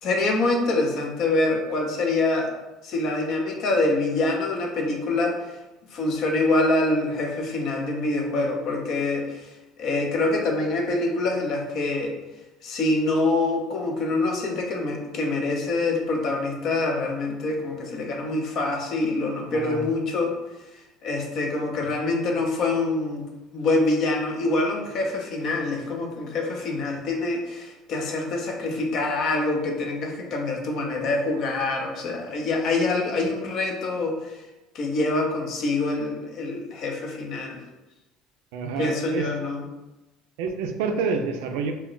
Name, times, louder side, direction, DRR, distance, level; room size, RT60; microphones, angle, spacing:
voice 1, 0.0-2.5 2.8-5.4 5.9-9.4 9.8-12.2 12.6-20.3 21.0-23.3 23.5-34.2 34.7-37.6 38.8-39.6, left 2 dB, 55° left, 1 dB, 0.5 m, -25 dB
voice 2, 19.5-19.9 38.5-39.3 40.4-41.7, right 5 dB, 90° right, 5 dB, 0.3 m, -28 dB
2.2 x 2.1 x 3.7 m, 1.0 s
cardioid pair, 120°, 0 cm